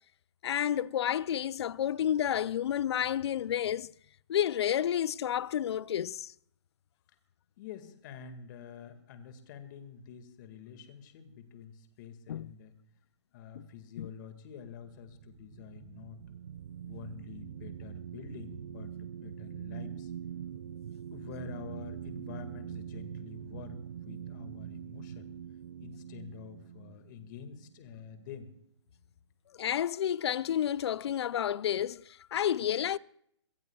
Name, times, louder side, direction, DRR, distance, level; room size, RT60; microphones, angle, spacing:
voice 1, 0.4-3.9 4.3-6.3 12.3-12.5 13.6-13.7 14.0-14.1 29.6-33.0, left 10 dB, 65° left, 0.5 m, -30 dB
voice 2, 7.6-12.8 13.3-16.2 16.8-20.1 21.1-25.3 25.8-28.5, left 7 dB, 40° left, 1.9 m, -47 dB
sound 1, 14.7-28.3, right 9 dB, 65° right, 0.5 m, -44 dB
26.5 x 18.5 x 2.3 m
hypercardioid pair, 140°, 15 cm